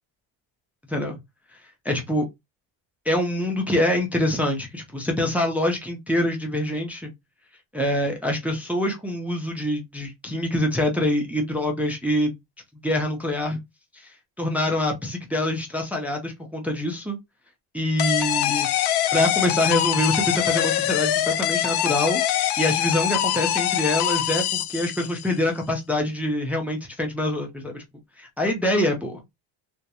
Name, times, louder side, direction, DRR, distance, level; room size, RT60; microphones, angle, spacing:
voice 1, 0.9-1.2 1.8-2.2 3.1-7.1 7.7-12.4 12.8-13.6 13.9-17.2 17.7-18.7 19.1-27.8 28.2-29.2, left 1 dB, 5° right, 0.5 m, -25 dB
sound 1, 18.0-25.3, left 11 dB, 60° left, 0.5 m, -24 dB
2.3 x 2.1 x 2.8 m
cardioid pair, 110°, 48 cm